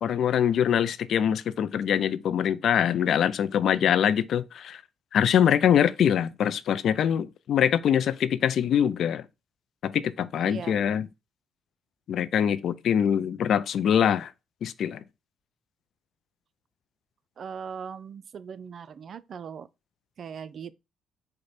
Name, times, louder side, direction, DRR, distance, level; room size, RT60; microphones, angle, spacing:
voice 1, 0.0-4.8 5.1-9.2 9.8-11.1 12.1-14.3 14.6-15.0, left 9 dB, 65° left, 0.3 m, -24 dB
voice 2, 10.4-10.9 17.4-19.7 20.2-20.7, right 7 dB, 55° right, 0.3 m, -39 dB
4.9 x 2.1 x 4.2 m
cardioid pair, 90°, 0 cm